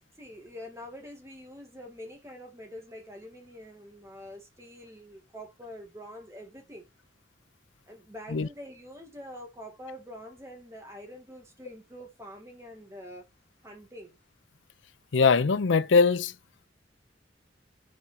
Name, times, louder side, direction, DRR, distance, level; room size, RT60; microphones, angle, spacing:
voice 1, 0.2-6.9 7.9-13.2 13.6-14.2, equal, 15° right, 2.0 m, -45 dB
voice 2, 15.1-16.3, left 5 dB, 90° left, 0.6 m, -21 dB
5.1 x 4.8 x 4.2 m
head